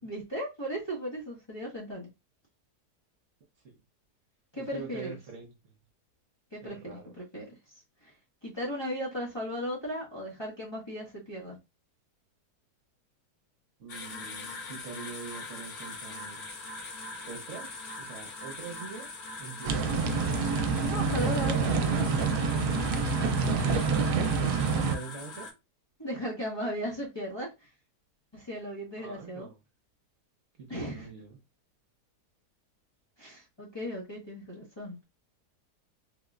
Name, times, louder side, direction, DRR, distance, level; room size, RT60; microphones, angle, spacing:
voice 1, 0.0-2.1 4.5-5.2 6.5-7.5 8.0-8.1 8.4-11.6 20.9-21.8 26.0-27.5 28.3-29.5 30.7-31.1 33.2-35.0, equal, 20° left, 1.1 m, -36 dB
voice 2, 4.6-5.5 6.6-7.1 13.8-16.5 17.2-20.0 24.7-25.5 29.0-29.6 30.6-31.4, right 5 dB, 60° right, 1.1 m, -44 dB
sound 1, 13.9-25.5, left 3 dB, 70° left, 1.4 m, -42 dB
sound 2, 19.6-25.0, right 4 dB, 80° right, 1.1 m, -27 dB
3.5 x 2.9 x 2.4 m
omnidirectional pair, 1.7 m